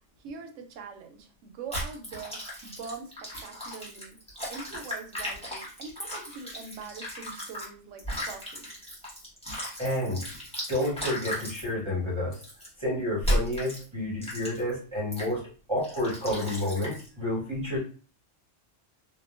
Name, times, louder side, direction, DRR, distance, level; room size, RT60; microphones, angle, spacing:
voice 1, 0.2-4.2 4.5-8.7, right 5 dB, 80° right, 5 dB, 0.9 m, -43 dB
sound 1, 1.7-7.7 8.0-11.7 12.3-12.7 13.2-13.8 14.2-14.7 15.1-15.3 15.8-17.1, equal, 5° left, 1.0 m, -35 dB
voice 2, 9.8-10.2 10.7-12.4 12.8-17.8, left 1 dB, 30° right, -6 dB, 0.7 m, -30 dB
2.9 x 2.1 x 2.4 m, 0.39 s
omnidirectional pair, 1.3 m